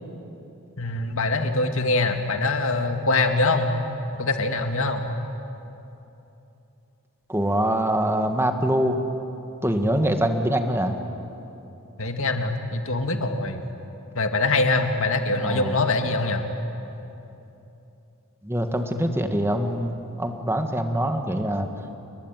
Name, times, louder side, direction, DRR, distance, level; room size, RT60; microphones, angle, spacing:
voice 1, 0.8-3.7 4.2-5.1 12.0-13.6 14.1-16.4, left 2 dB, 65° left, 5 dB, 2.3 m, -23 dB
voice 2, 7.3-9.0 9.6-11.0 15.4-15.8 18.4-21.7, right 1 dB, 10° right, 6 dB, 1.8 m, -24 dB
29.5 x 22.0 x 9.2 m, 2.9 s
head